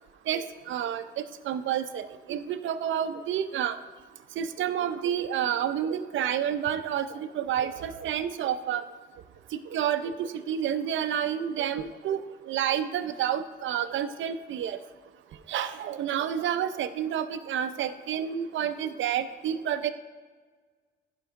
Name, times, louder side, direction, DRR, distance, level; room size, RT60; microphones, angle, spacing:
voice 1, 0.3-1.0 1.5-3.8 4.4-8.8 9.7-12.2 12.5-14.8 15.5-19.9, right 9 dB, 70° right, 11 dB, 0.5 m, -29 dB
15.0 x 5.4 x 3.6 m, 1.5 s
cardioid pair, 145°, 20 cm